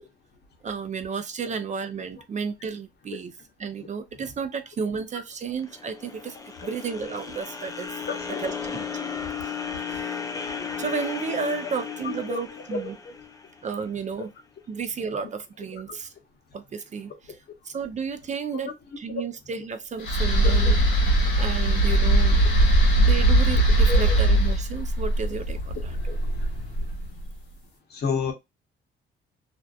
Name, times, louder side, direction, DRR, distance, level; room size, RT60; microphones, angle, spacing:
voice 1, 0.6-3.3 3.6-6.4 6.6-8.1 8.4-8.8 9.4-10.2 10.8-12.9 13.6-14.3 14.7-16.1 16.5-17.1 17.6-20.8 21.4-22.4 23.0-25.9, right 6 dB, 40° right, 0.4 m, -32 dB
sound 1, 5.6-13.9, left 6 dB, 15° left, 0.5 m, -35 dB
voice 2, 8.1-8.4 12.0-12.4 12.7-13.1 15.7-16.0 18.5-18.7 20.4-20.5 23.9-24.2 26.1-26.2 27.9-28.3, left 4 dB, 55° left, 1.0 m, -31 dB
sound 2, 20.0-27.2, right 1 dB, 75° left, 1.1 m, -20 dB
2.5 x 2.1 x 2.5 m
cardioid pair, 90°, 20 cm